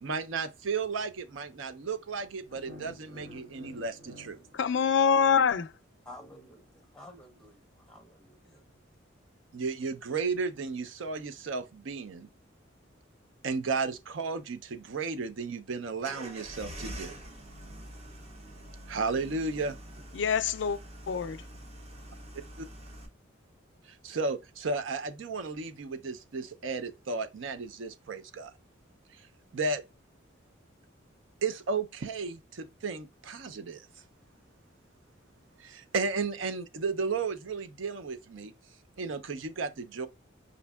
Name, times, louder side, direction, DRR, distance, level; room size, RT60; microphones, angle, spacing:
voice 1, 0.0-4.4 9.5-12.3 13.4-17.2 18.9-19.8 22.6-22.7 23.9-28.5 29.5-29.8 31.4-33.9 35.6-38.5 39.0-40.1, right 4 dB, 70° right, 0.5 m, -34 dB
sound 1, 2.5-5.6, equal, 50° right, 1.6 m, -50 dB
voice 2, 4.5-5.7 20.1-20.8 21.1-21.4, left 6 dB, 60° left, 0.3 m, -25 dB
voice 3, 6.0-8.6, left 1 dB, 5° left, 0.6 m, -51 dB
sound 2, 16.0-23.1, right 1 dB, 30° right, 0.7 m, -45 dB
5.0 x 2.7 x 2.2 m
head